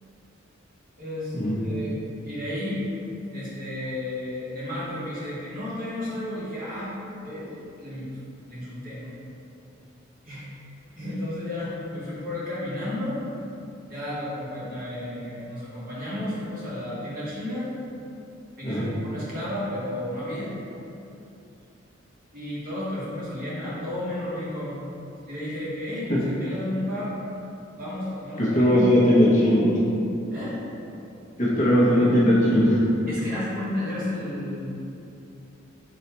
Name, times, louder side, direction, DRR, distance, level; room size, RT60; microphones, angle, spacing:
voice 1, 1.0-2.0 2.2-2.8 3.3-6.9 7.2-8.1 8.5-9.1 10.2-10.5 11.0-13.2 13.9-17.7 18.6-20.5 22.3-24.8 25.3-27.2 27.8-29.1 30.3-30.6 33.1-34.7, left 1 dB, 45° right, -9 dB, 1.2 m, -32 dB
voice 2, 28.4-29.7 31.4-32.8, equal, 40° left, -7 dB, 0.8 m, -19 dB
4.0 x 2.3 x 4.2 m, 2.8 s
head